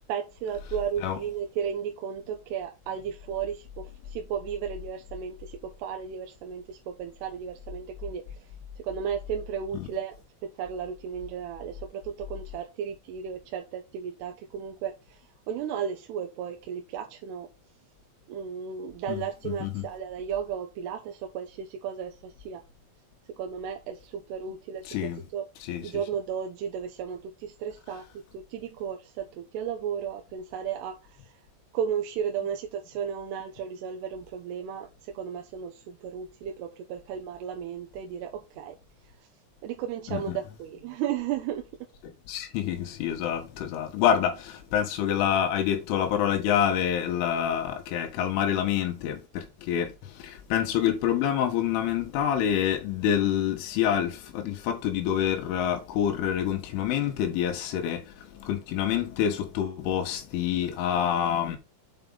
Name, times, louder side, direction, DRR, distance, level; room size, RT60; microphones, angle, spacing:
voice 1, 0.1-8.2 8.8-10.2 10.4-15.2 15.5-17.5 18.3-22.6 23.4-25.5 25.8-31.0 31.2-31.3 31.7-38.8 39.6-41.6, right 8 dB, 75° right, 2.6 m, -34 dB
voice 2, 19.1-19.9 24.9-25.2 25.6-25.9 40.1-40.2 42.0-61.6, left 9 dB, 80° left, 3.7 m, -27 dB
8.3 x 4.7 x 4.0 m
omnidirectional pair, 5.7 m